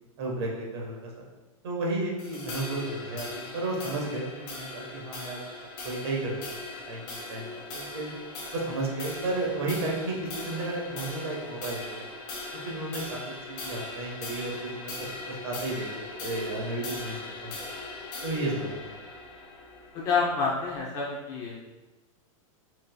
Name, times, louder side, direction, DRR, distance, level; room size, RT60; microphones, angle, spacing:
voice 1, 0.2-1.2 1.6-5.5 5.8-8.1 8.5-12.1 12.6-17.2 17.4-17.7 18.2-18.9, right 2 dB, 50° right, -1 dB, 1.2 m, -33 dB
sound 1, 2.2-20.8, left 2 dB, 35° left, 1.3 m, -40 dB
voice 2, 19.9-21.6, left 4 dB, 20° left, -5 dB, 0.5 m, -28 dB
4.8 x 4.2 x 2.2 m, 1.2 s
supercardioid pair, 175°, 18 cm